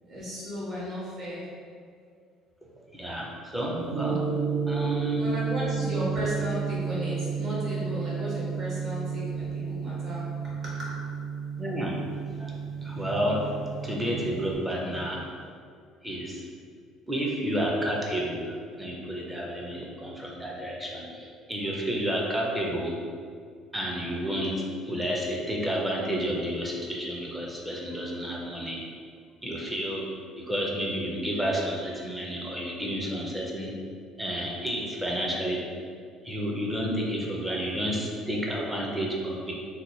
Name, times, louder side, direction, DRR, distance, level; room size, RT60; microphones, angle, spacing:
voice 1, 0.0-1.4 5.1-10.9, equal, 35° right, -7 dB, 1.1 m, -35 dB
voice 2, 2.9-4.2 4.7-5.2 11.6-12.0 12.4-15.2 16.0-16.4 17.1-22.9 23.7-28.8 29.4-30.1 30.4-33.7 34.2-35.6 36.2-39.5, equal, 5° right, -3 dB, 0.5 m, -30 dB
Gong, 3.9-14.5, right 6 dB, 80° right, 0.5 m, -32 dB
2.8 x 2.2 x 3.8 m, 2.2 s
cardioid pair, 145°, 0 cm